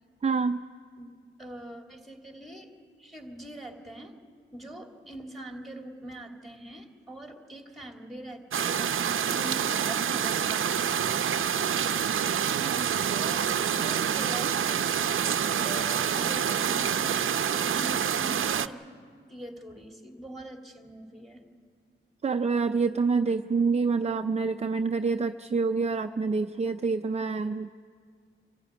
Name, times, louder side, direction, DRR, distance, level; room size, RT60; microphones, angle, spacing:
voice 1, 0.2-0.6 12.6-13.1 22.2-27.7, right 4 dB, 30° right, 7 dB, 0.5 m, -27 dB
voice 2, 1.4-2.7 3.0-4.1 4.5-11.0 12.7-13.5 13.7-14.9 15.5-18.8 19.3-21.4, right 1 dB, ahead, 3 dB, 2.8 m, -43 dB
sound 1, 8.5-18.7, right 8 dB, 75° right, 0.6 m, -27 dB
26.0 x 14.5 x 9.5 m, 2.1 s
wide cardioid pair, 95°, 21 cm